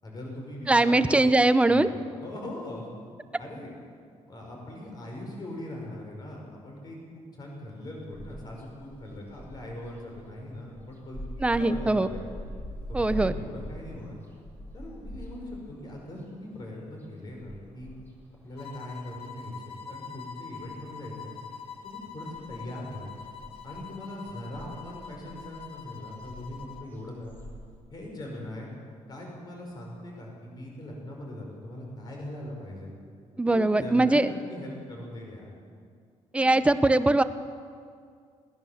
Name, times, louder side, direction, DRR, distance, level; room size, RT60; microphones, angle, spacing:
voice 1, 0.0-1.2 1.7-2.0 2.2-2.9 3.4-3.7 4.3-12.2 12.9-14.2 14.7-17.9 18.4-21.3 21.8-23.1 23.6-27.4 27.9-28.7 29.1-32.9 33.5-35.5 36.4-36.6, left 1 dB, 35° left, -1 dB, 5.5 m, -40 dB
voice 2, 0.7-1.9 11.4-12.1 12.9-13.3 33.4-34.3 36.3-37.2, right 2 dB, 10° right, 12 dB, 0.7 m, -21 dB
sound 1, 8.1-19.7 20.0-21.3 21.6-27.8, equal, 15° left, 4.2 m, -43 dB
sound 2, 18.6-26.9, left 7 dB, 50° left, 1.3 m, -44 dB
21.5 x 18.5 x 7.3 m, 2.2 s
cardioid pair, 170°, 12 cm